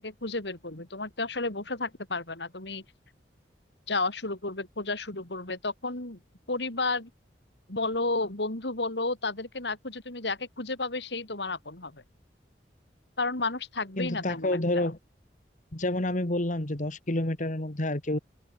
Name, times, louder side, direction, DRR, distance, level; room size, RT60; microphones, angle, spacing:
voice 1, 0.0-2.8 3.9-6.2 6.5-7.1 7.7-12.0 13.2-14.9, left 3 dB, 75° left, 3.7 m, -32 dB
voice 2, 14.0-15.0 15.7-18.2, left 1 dB, 45° left, 2.1 m, -29 dB
open air
head